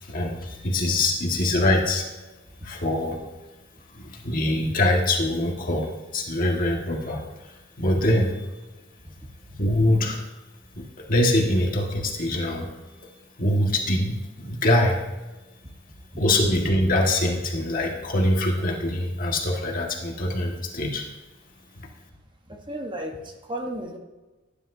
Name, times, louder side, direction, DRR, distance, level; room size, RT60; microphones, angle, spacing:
voice 1, 0.0-2.1 2.6-3.2 3.9-7.5 7.8-8.5 9.6-10.2 10.8-12.7 13.4-15.0 16.2-21.1 21.8-21.9, left 1 dB, 40° left, 0 dB, 1.8 m, -24 dB
voice 2, 22.5-24.0, equal, 25° right, 2 dB, 1.2 m, -34 dB
18.0 x 10.5 x 2.7 m, 1.2 s
head